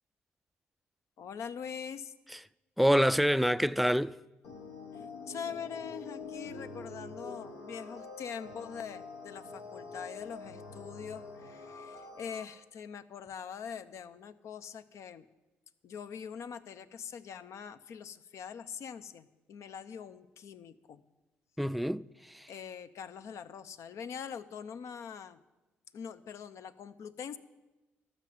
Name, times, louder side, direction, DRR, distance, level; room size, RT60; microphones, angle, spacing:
voice 1, 1.2-2.1 4.9-15.2 15.8-21.0 22.5-25.4 25.9-27.4, left 7 dB, 65° left, 0.7 m, -43 dB
voice 2, 2.8-4.2 21.6-22.0 22.3-22.5, equal, ahead, 0.3 m, -26 dB
sound 1, 4.4-12.5, left 3 dB, 85° left, 1.3 m, -46 dB
13.5 x 6.4 x 9.3 m
supercardioid pair, 60°, 5 cm